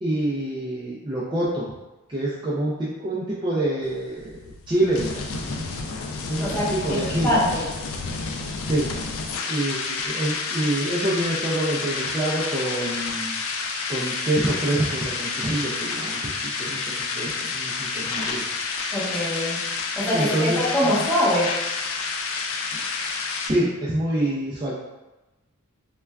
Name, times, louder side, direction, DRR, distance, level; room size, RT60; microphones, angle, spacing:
voice 1, 0.0-1.7 2.1-7.3 8.7-8.9 9.5-13.4 13.9-18.4 20.1-20.9 23.5-24.7, right 1 dB, 20° right, -8 dB, 0.4 m, -26 dB
sound 1, 3.8-23.5, left 4 dB, 65° left, 0.3 m, -30 dB
voice 2, 6.4-7.0 7.2-7.6 18.9-19.6 20.0-21.5, left 1 dB, 10° left, -10 dB, 1.0 m, -23 dB
3.4 x 2.2 x 2.2 m, 1.1 s
head